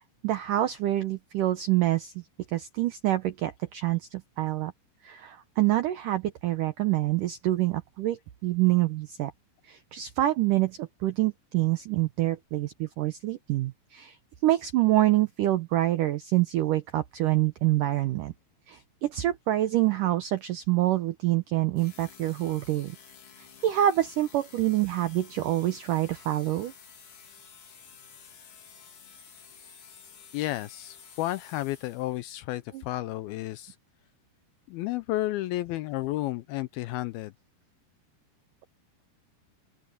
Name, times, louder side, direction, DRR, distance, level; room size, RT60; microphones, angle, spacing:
voice 1, 0.2-2.2 2.5-4.7 5.0-9.3 9.6-14.2 14.4-18.3 18.7-23.0 23.4-26.7 32.7-32.8, right 15 dB, 85° right, 1.9 m, -26 dB
sound 1, 21.8-32.3, left 7 dB, 50° left, 4.3 m, -52 dB
voice 2, 30.3-33.8 34.7-37.3, left 16 dB, 85° left, 2.2 m, -32 dB
open air
omnidirectional pair, 5.0 m